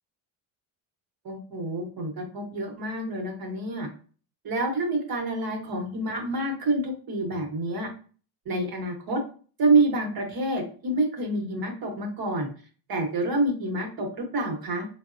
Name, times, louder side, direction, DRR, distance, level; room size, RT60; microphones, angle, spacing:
voice 1, 1.2-3.9 4.4-7.9 8.5-9.2 9.6-12.5 12.9-14.9, right 2 dB, 45° right, 2 dB, 1.0 m, -27 dB
3.3 x 2.0 x 2.5 m, 0.40 s
cardioid pair, 100°, 50 cm